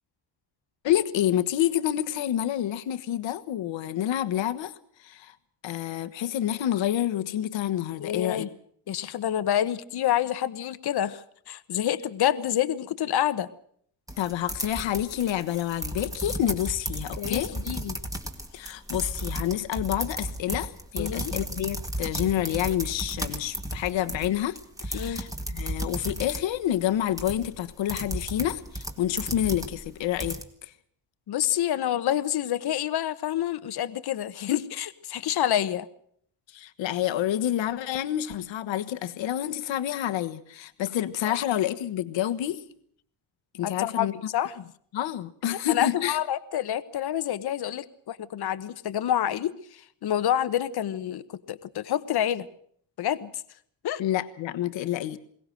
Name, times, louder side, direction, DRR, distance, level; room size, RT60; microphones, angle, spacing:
voice 1, 0.8-4.7 5.0-5.3 5.6-8.5 14.2-17.5 18.5-30.7 36.5-42.6 43.5-44.1 44.9-46.2 54.0-55.2, left 12 dB, 75° left, 9 dB, 1.4 m, -28 dB
voice 2, 8.0-8.5 8.9-13.5 17.2-18.0 21.0-21.3 24.9-25.2 31.3-35.9 41.2-41.4 43.6-44.5 45.5-52.5 53.0-53.4 53.8-54.0, left 11 dB, 55° left, 13 dB, 1.1 m, -28 dB
sound 1, 14.1-30.4, right 1 dB, 5° right, 1.9 m, -34 dB
22.0 x 18.0 x 7.7 m, 0.63 s
cardioid pair, 135°, 46 cm